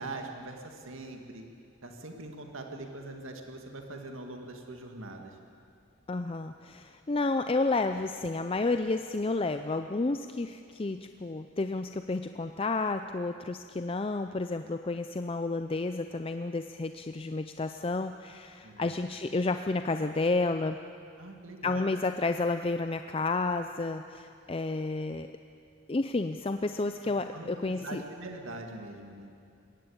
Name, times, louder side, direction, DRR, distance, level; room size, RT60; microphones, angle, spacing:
voice 1, 0.0-1.4 1.8-5.3 18.6-18.9 21.2-21.8 27.0-29.3, right 2 dB, 80° right, 3 dB, 2.0 m, -42 dB
voice 2, 6.1-20.8 21.6-25.3 25.9-28.0, left 3 dB, 25° left, 8 dB, 0.5 m, -31 dB
21.0 x 17.0 x 8.6 m, 2.4 s
head